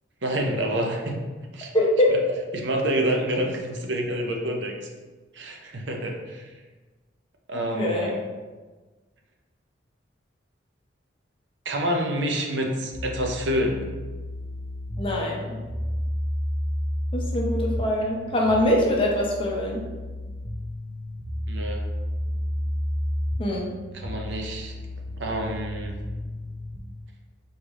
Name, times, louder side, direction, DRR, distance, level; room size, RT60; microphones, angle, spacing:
voice 1, 0.2-1.2 1.5-1.7 2.5-4.7 5.3-6.5 7.5-8.2 11.7-13.9 21.5-21.8 23.9-24.7 25.2-26.0, right 1 dB, 70° right, 2 dB, 0.7 m, -27 dB
voice 2, 1.7-2.2 7.7-8.1 15.0-15.6 17.1-19.8 23.4-23.7, left 1 dB, 30° left, -2 dB, 0.7 m, -23 dB
sound 1, 12.9-26.8, left 1 dB, 75° left, 0.8 m, -31 dB
4.0 x 3.4 x 3.5 m, 1.3 s
head